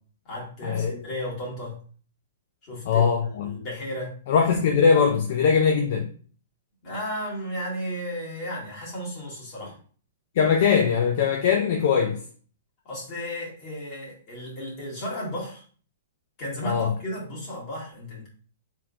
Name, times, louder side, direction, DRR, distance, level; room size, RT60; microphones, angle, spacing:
voice 1, 0.2-1.8 2.6-4.2 6.8-9.8 12.8-15.6 16.4-18.3, equal, 30° left, 2.0 m, -34 dB
voice 2, 2.9-3.5 4.3-6.1 10.3-12.2 16.6-17.0, left 6 dB, 45° left, 0.5 m, -21 dB
4.4 x 3.6 x 2.4 m
hypercardioid pair, 165°, 0 cm